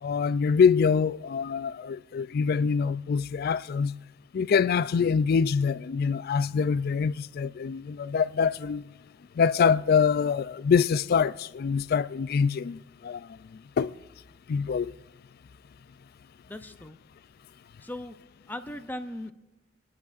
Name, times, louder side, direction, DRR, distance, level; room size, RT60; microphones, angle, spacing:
voice 1, 0.0-4.0 4.3-8.8 9.4-13.4 13.8-14.0 14.5-14.9, left 6 dB, 55° left, 0.3 m, -25 dB
voice 2, 16.5-17.0 17.8-18.2 18.5-19.3, left 1 dB, 10° left, 0.6 m, -38 dB
28.0 x 11.0 x 2.5 m
head